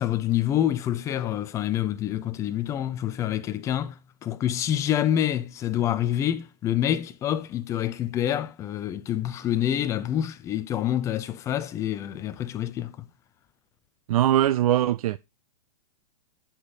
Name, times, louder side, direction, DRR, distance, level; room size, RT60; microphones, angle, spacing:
voice 1, 0.0-13.1, left 11 dB, 15° left, 0.5 m, -27 dB
voice 2, 14.1-15.2, right 12 dB, 55° right, 0.4 m, -21 dB
11.5 x 5.2 x 4.1 m
hypercardioid pair, 150°, 21 cm